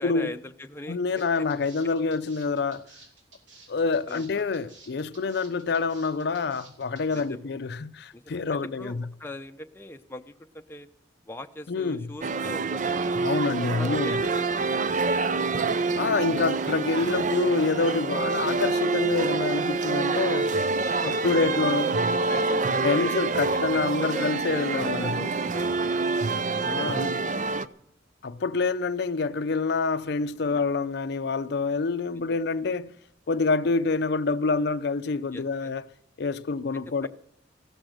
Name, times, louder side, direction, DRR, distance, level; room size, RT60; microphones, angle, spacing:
voice 1, 0.0-1.0 4.1-4.7 7.1-7.5 8.1-10.9 11.3-13.1 13.8-14.3 14.6-15.1 18.2-18.4 20.1-20.2 20.9-23.1 23.5-27.7 30.4-30.7 32.3-32.4 35.3-35.7 37.0-37.1, left 1 dB, 10° left, 0.6 m, -41 dB
voice 2, 0.9-2.8 3.7-9.0 11.7-12.1 13.2-14.3 15.9-20.5 21.0-21.9 22.8-25.2 26.6-27.1 28.2-32.9 33.3-35.8 36.2-37.1, left 4 dB, 60° left, 0.5 m, -27 dB
sound 1, 1.1-7.2, right 3 dB, 75° right, 4.0 m, -52 dB
sound 2, 12.2-27.7, right 4 dB, 40° right, 0.5 m, -26 dB
15.0 x 12.0 x 6.5 m
head